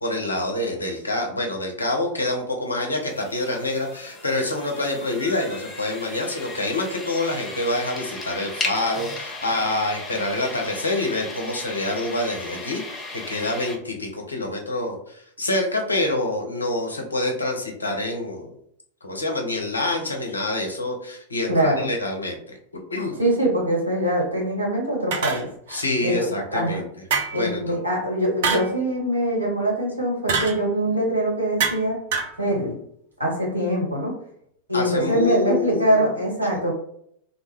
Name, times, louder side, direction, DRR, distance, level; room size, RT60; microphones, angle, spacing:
voice 1, 0.0-18.6 19.0-23.2 25.7-26.9 27.3-27.8 34.7-36.1, left 2 dB, 80° left, 2 dB, 0.5 m, -26 dB
sound 1, 3.0-13.8, left 3 dB, 15° left, 0.6 m, -36 dB
voice 2, 21.5-21.9 23.2-25.5 26.0-26.8 27.3-32.0 32.4-32.8 33.2-34.1 34.7-36.7, right 1 dB, 80° right, -3 dB, 1.0 m, -23 dB
sound 2, 25.1-25.8 27.1-27.5 28.4-28.8 30.3-30.6 31.6-32.4, right 6 dB, 55° right, 0.4 m, -25 dB
2.1 x 2.0 x 3.0 m, 0.70 s
figure-of-eight pair, 90°, 0 cm